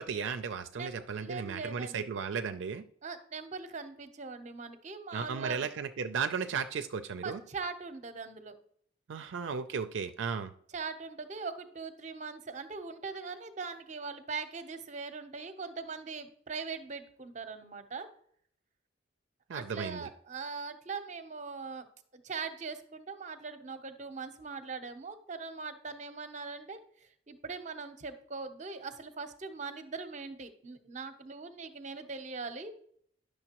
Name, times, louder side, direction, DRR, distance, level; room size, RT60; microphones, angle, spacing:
voice 1, 0.0-2.8 5.1-7.4 9.1-10.5 19.5-20.1, right 6 dB, 75° right, 9 dB, 0.4 m, -35 dB
voice 2, 0.7-2.0 3.0-5.7 7.2-8.6 10.7-18.1 19.5-32.8, right 4 dB, 40° right, 9 dB, 0.7 m, -41 dB
10.5 x 6.5 x 2.9 m, 0.63 s
head